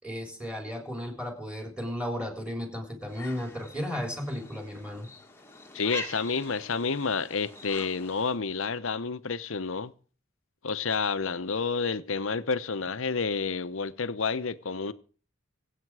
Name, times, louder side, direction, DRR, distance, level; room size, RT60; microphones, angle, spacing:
voice 1, 0.0-5.1, equal, 5° right, 3.6 m, -34 dB
sound 1, 3.1-8.4, left 2 dB, 10° left, 1.6 m, -44 dB
voice 2, 5.7-9.9 10.6-14.9, left 5 dB, 70° left, 0.9 m, -29 dB
24.0 x 8.6 x 4.8 m
head